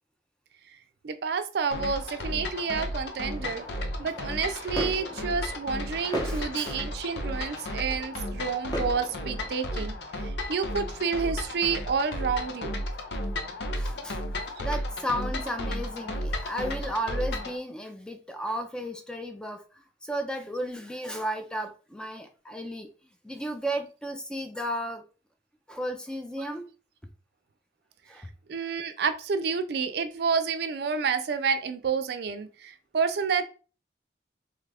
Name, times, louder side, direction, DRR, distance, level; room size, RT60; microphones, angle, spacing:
voice 1, 1.0-3.6 4.0-12.7 26.4-26.5 28.5-33.4, right 5 dB, 65° right, 0.4 m, -29 dB
sound 1, 1.7-17.6, left 1 dB, 70° left, 0.5 m, -34 dB
sound 2, 3.3-9.8, equal, 25° left, 0.8 m, -39 dB
voice 2, 6.2-6.7 13.7-14.2 14.6-19.6 20.0-22.9 23.2-25.0 25.7-26.6 28.1-28.3, equal, 5° left, 0.4 m, -34 dB
3.0 x 2.4 x 3.4 m
head